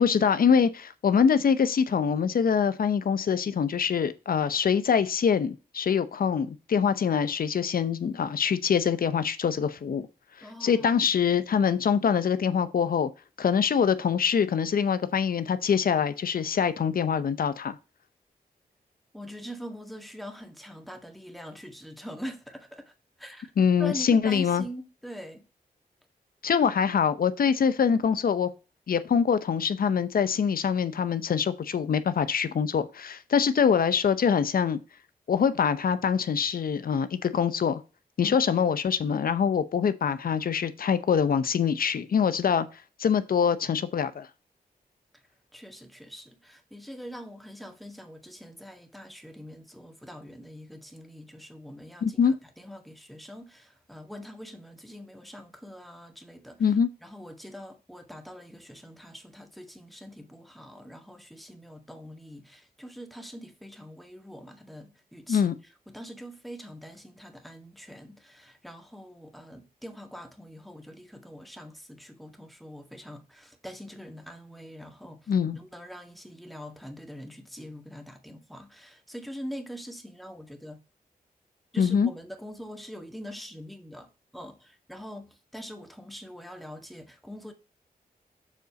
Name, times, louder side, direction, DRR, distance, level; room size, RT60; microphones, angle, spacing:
voice 1, 0.0-10.1 10.4-13.1 13.4-17.8 23.6-24.6 26.4-28.5 28.9-34.8 35.3-37.8 38.2-42.7 43.0-44.3 52.0-52.3 56.6-56.9 65.3-65.5 75.3-75.6 81.8-82.1, left 7 dB, 70° left, 0.8 m, -24 dB
voice 2, 10.4-11.2 19.1-22.9 23.2-23.5 23.8-25.5 38.2-38.5 45.5-56.6 57.0-65.5 65.9-80.8 81.7-87.5, equal, ahead, 1.8 m, -43 dB
7.3 x 4.0 x 5.2 m
cardioid pair, 55°, 16 cm